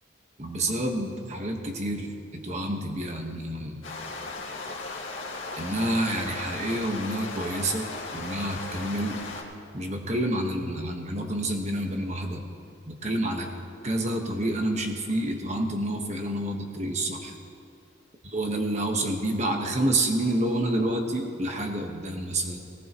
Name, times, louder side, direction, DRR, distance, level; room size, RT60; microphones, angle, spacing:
voice 1, 0.4-3.9 5.6-9.2 9.7-12.4 12.9-13.5 13.8-17.3 18.2-22.6, right 1 dB, 35° right, 3 dB, 1.4 m, -28 dB
sound 1, 3.8-9.4, left 3 dB, 85° left, 2.0 m, -37 dB
19.0 x 17.5 x 3.1 m, 2.4 s
head